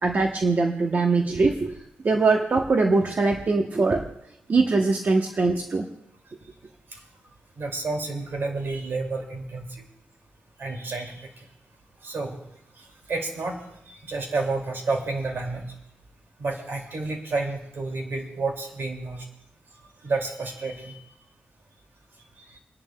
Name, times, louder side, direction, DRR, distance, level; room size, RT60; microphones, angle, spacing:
voice 1, 0.0-1.7 2.0-4.0 4.5-5.8, right 3 dB, 50° right, 3 dB, 0.9 m, -22 dB
voice 2, 7.6-9.8 10.6-11.4 12.0-12.4 12.8-15.7 16.4-19.3 20.0-21.0 22.5-22.6, right 3 dB, 65° right, 2 dB, 2.4 m, -30 dB
29.5 x 10.5 x 2.2 m, 0.78 s
wide cardioid pair, 95°, 4 cm